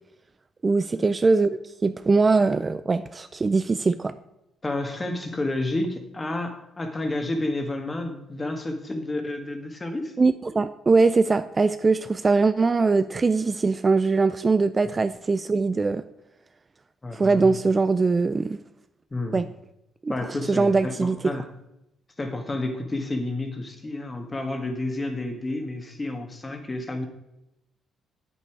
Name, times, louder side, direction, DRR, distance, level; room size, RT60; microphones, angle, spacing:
voice 1, 0.6-1.5 1.8-4.1 10.2-16.0 17.1-18.6 19.3-19.5 20.0-20.1 20.5-21.3, right 4 dB, 30° right, 12 dB, 0.4 m, -21 dB
voice 2, 4.6-10.1 17.0-17.6 19.1-19.5 20.1-21.5 22.2-27.1, left 2 dB, 25° left, 6 dB, 1.7 m, -30 dB
8.4 x 8.3 x 4.6 m, 0.85 s
cardioid pair, 90°, 0 cm